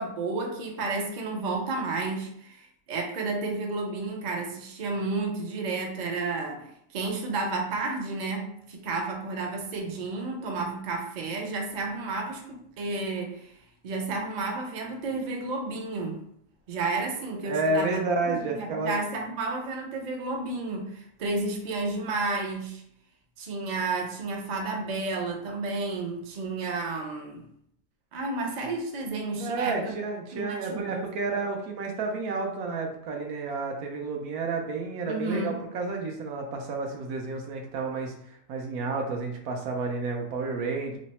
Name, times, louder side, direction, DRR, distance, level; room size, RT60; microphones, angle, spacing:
voice 1, 0.0-13.5 13.8-16.2 16.7-22.8 23.4-27.4 28.1-29.9 30.3-31.0 35.0-35.6, right 3 dB, 55° right, 1 dB, 0.5 m, -31 dB
voice 2, 17.4-18.9 29.4-41.0, right 3 dB, 80° right, 2 dB, 1.2 m, -30 dB
3.2 x 2.0 x 4.1 m, 0.71 s
omnidirectional pair, 1.6 m